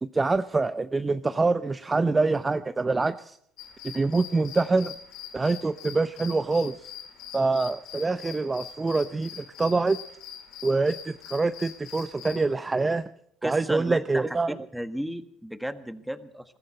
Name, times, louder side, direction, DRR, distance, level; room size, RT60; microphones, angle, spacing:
voice 1, 0.0-3.4 3.8-4.9 5.3-6.9 7.3-10.0 10.6-13.0 13.4-14.5, right 3 dB, 20° right, 12 dB, 0.6 m, -25 dB
sound 1, 3.6-12.5, left 8 dB, 75° left, 2.3 m, -44 dB
voice 2, 13.4-14.4 14.7-16.6, equal, 5° right, 10 dB, 1.4 m, -34 dB
21.0 x 15.0 x 4.3 m, 0.69 s
cardioid pair, 105°, 0 cm